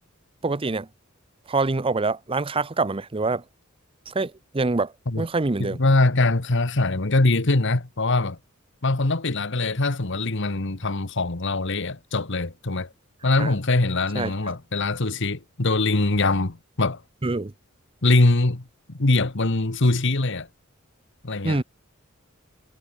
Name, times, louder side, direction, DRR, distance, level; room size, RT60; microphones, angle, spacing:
voice 1, 0.4-0.9 1.5-3.4 4.1-5.8 13.4-13.5 14.1-14.3 17.2-17.5 21.4-21.6, right 3 dB, 25° right, 0.7 m, -25 dB
voice 2, 5.6-8.4 8.8-12.9 13.2-17.0 18.0-20.5 21.2-21.6, left 2 dB, 60° left, 1.5 m, -22 dB
head